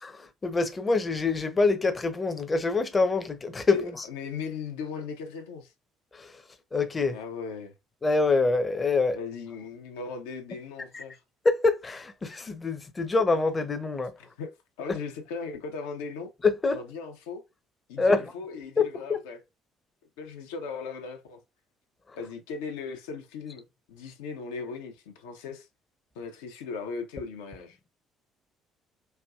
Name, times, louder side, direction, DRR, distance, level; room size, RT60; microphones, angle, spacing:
voice 1, 0.4-3.8 6.2-6.3 6.7-7.2 8.0-9.2 10.9-11.0 11.4-14.1 16.4-16.8 18.0-18.2 18.8-18.9 19.1-19.2, left 3 dB, 30° left, 0.8 m, -25 dB
voice 2, 3.7-5.7 7.1-7.7 9.1-11.2 14.2-14.5 14.8-16.3 16.7-17.4 17.9-19.4 20.2-21.4 22.1-25.7 26.1-27.8, left 5 dB, 70° left, 0.8 m, -38 dB
4.5 x 2.6 x 2.4 m
figure-of-eight pair, 50°, 0 cm